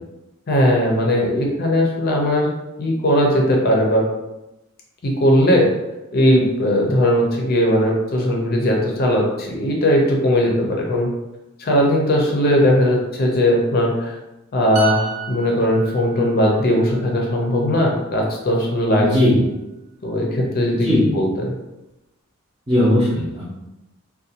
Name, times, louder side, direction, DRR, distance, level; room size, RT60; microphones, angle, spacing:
voice 1, 0.5-2.5 2.8-4.0 5.0-5.7 6.1-11.1 11.6-14.1 14.5-19.1 20.0-20.9 21.1-21.5, equal, 45° left, 0 dB, 0.5 m, -18 dB
sound 1, 14.8-18.4 18.7-18.9, right 7 dB, 80° right, 0.4 m, -33 dB
voice 2, 19.0-19.4 20.8-21.1 22.7-23.5, left 1 dB, 20° right, -11 dB, 0.6 m, -18 dB
2.5 x 2.2 x 2.7 m, 0.97 s
head